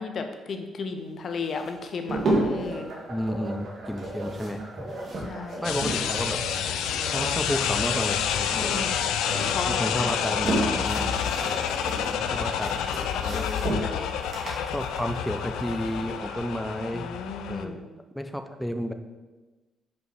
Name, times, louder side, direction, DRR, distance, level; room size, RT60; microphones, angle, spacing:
voice 1, 0.0-2.9 5.2-5.7 8.6-9.0 9.5-10.0 11.9-12.6 13.3-14.1 16.9-17.9, left 4 dB, 55° left, 6 dB, 0.7 m, -35 dB
sound 1, 1.4-2.8 3.9-6.2 6.5-8.3 8.6-9.5 10.0-16.1, right 1 dB, 50° right, 1.9 m, -32 dB
sound 2, 2.1-17.0, right 1 dB, 65° right, 1.6 m, -41 dB
voice 2, 3.1-5.3 5.6-6.4 7.1-8.7 9.7-11.1 11.4-11.7 12.2-13.8 14.6-17.1 17.5-18.9, equal, 5° left, 7 dB, 0.5 m, -32 dB
sound 3, 5.6-17.7, left 8 dB, 90° left, 0.3 m, -28 dB
5.3 x 4.8 x 4.8 m, 1.2 s
cardioid pair, 90°, 0 cm